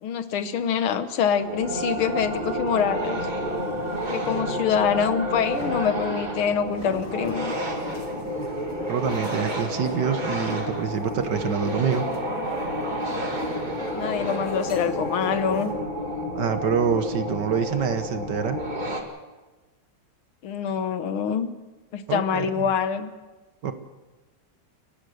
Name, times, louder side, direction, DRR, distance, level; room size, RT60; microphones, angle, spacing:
voice 1, 0.0-3.2 4.1-7.5 13.9-15.7 20.4-21.5 21.9-23.1, left 7 dB, 80° left, 11 dB, 1.9 m, -25 dB
sound 1, 1.4-19.0, equal, 20° right, 1.8 m, -30 dB
sound 2, 2.2-2.8 3.3-4.9 5.5-7.2, left 4 dB, 15° left, 2.0 m, -43 dB
sound 3, 6.9-15.7, left 2 dB, 55° left, 3.4 m, -39 dB
voice 2, 8.9-12.1 16.4-18.6 22.1-22.7 23.6-23.7, right 7 dB, 60° right, 9 dB, 1.6 m, -26 dB
29.0 x 12.0 x 7.8 m, 1.2 s
omnidirectional pair, 2.3 m